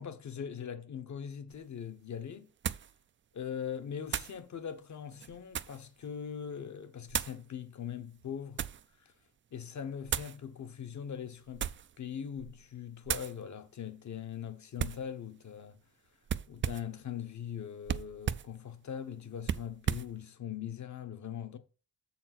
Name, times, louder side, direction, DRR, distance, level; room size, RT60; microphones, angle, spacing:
voice 1, 0.0-2.5 3.3-8.6 9.0-9.1 9.5-11.7 12.0-15.8 16.5-21.6, left 8 dB, 50° left, 1.1 m, -41 dB
sound 1, 1.5-1.6 2.6-2.9 4.1-4.4 5.1-5.9 7.1-7.4 8.2-8.9 10.1-10.4 11.5-12.0 12.4-12.6 13.1-13.3 14.8-15.1 16.3-17.0 17.9-18.5 19.4-20.1, right 9 dB, 35° right, 0.4 m, -35 dB
7.2 x 4.4 x 6.0 m
cardioid pair, 105°, 36 cm